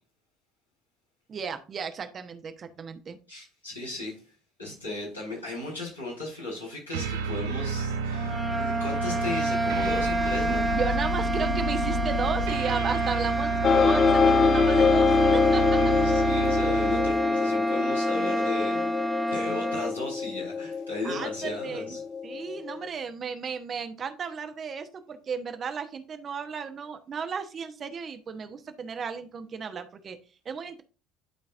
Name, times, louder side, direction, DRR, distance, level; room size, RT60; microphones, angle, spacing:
voice 1, 1.3-3.2 10.5-15.9 21.0-22.0 22.2-30.2 30.4-30.8, right 6 dB, 35° right, 8 dB, 1.0 m, -34 dB
voice 2, 3.3-4.3 4.6-10.6 15.8-19.0 19.3-22.0 22.3-22.4, left 2 dB, 85° left, -5 dB, 3.9 m, -36 dB
sound 1, 6.9-17.3, right 5 dB, 70° right, 0.8 m, -30 dB
sound 2, 8.1-20.0, right 1 dB, 10° right, 0.8 m, -29 dB
sound 3, 13.6-22.9, left 5 dB, 35° left, 0.5 m, -25 dB
11.0 x 4.5 x 2.5 m, 0.36 s
figure-of-eight pair, 60°, 0 cm